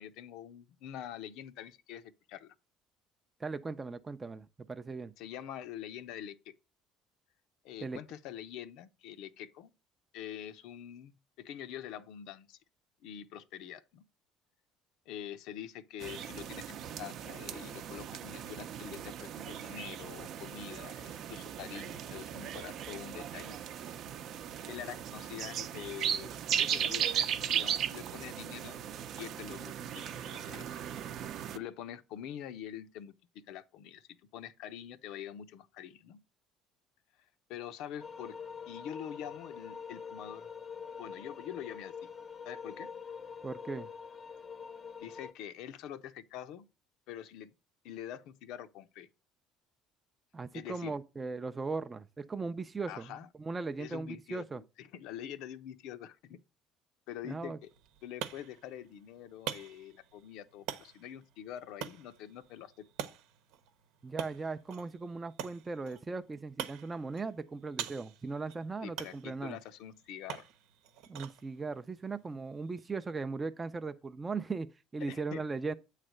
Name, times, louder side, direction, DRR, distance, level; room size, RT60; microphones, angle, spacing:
voice 1, 0.0-2.5 5.2-6.5 7.6-9.7 10.1-12.6 13.0-14.0 15.1-23.6 24.7-26.3 26.6-28.8 29.2-30.8 31.5-33.1 33.5-36.2 37.5-38.4 38.7-40.5 41.0-42.1 42.4-42.9 45.0-46.6 47.1-47.5 47.8-49.1 50.5-51.0 52.9-53.3 53.8-56.4 57.1-57.7 58.0-62.7 68.8-70.5 75.0-75.4, left 10 dB, 75° left, 0.7 m, -45 dB
voice 2, 3.4-5.1 7.8-8.0 43.4-43.9 50.3-54.6 57.2-57.6 64.0-69.6 71.1-75.7, right 4 dB, 20° right, 0.5 m, -38 dB
sound 1, 16.0-31.6, right 9 dB, 55° right, 0.7 m, -37 dB
sound 2, 38.0-45.3, left 6 dB, 30° left, 0.7 m, -45 dB
sound 3, 57.6-73.2, right 10 dB, 80° right, 0.9 m, -46 dB
8.6 x 3.3 x 6.4 m
cardioid pair, 120°, 0 cm